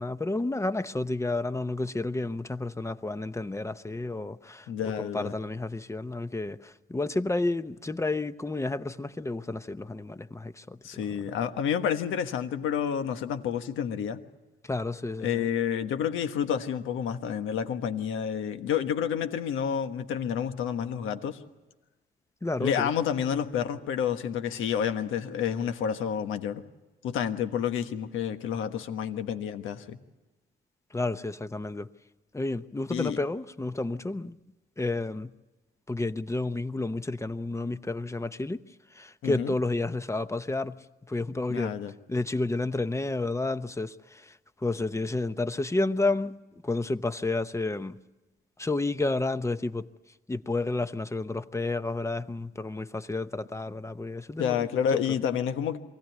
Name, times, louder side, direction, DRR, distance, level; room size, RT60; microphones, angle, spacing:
voice 1, 0.0-4.7 5.0-10.8 14.6-15.5 22.4-22.9 30.9-31.9 32.3-34.4 34.8-35.3 35.9-38.6 38.9-40.7 41.1-41.7 42.1-44.3 44.6-46.4 46.6-48.0 48.6-49.8 50.3-54.7, left 2 dB, 15° left, 0.8 m, -31 dB
voice 2, 4.7-5.3 10.8-14.2 15.2-21.4 22.6-26.6 27.0-30.0 32.9-33.2 39.2-39.5 41.5-41.9 54.4-55.8, left 8 dB, 85° left, 1.4 m, -29 dB
23.5 x 16.5 x 9.3 m
cardioid pair, 90°, 20 cm